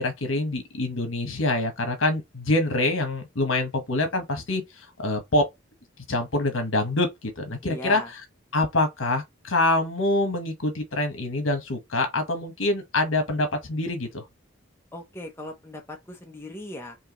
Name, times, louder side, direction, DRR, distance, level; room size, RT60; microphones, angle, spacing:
voice 1, 0.0-4.6 5.0-5.4 6.1-8.0 8.5-14.2, left 2 dB, 80° left, 1.3 m, -25 dB
voice 2, 7.6-8.1 14.9-17.0, left 1 dB, 10° left, 0.7 m, -38 dB
4.5 x 2.9 x 3.1 m
head